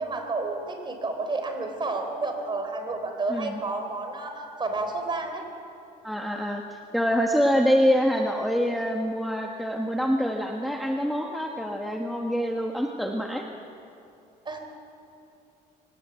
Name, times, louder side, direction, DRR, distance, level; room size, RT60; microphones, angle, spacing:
voice 1, 0.0-5.4 14.4-14.6, right 3 dB, 30° right, 5 dB, 4.1 m, -30 dB
voice 2, 3.3-3.6 6.0-13.4, equal, ahead, 1 dB, 1.4 m, -25 dB
24.5 x 18.0 x 8.2 m, 2.7 s
cardioid pair, 110°, 17 cm